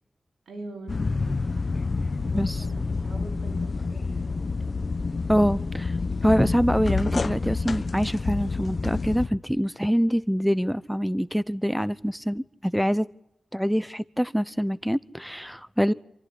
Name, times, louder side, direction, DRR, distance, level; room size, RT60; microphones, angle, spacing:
voice 1, 0.5-4.4, right 2 dB, 85° right, 4.4 m, -44 dB
sound 1, 0.9-9.3, left 4 dB, 55° left, 1.2 m, -28 dB
voice 2, 2.3-2.7 5.3-13.1 13.5-15.9, equal, ahead, 0.8 m, -25 dB
28.0 x 14.0 x 9.9 m
cardioid pair, 45°, 0 cm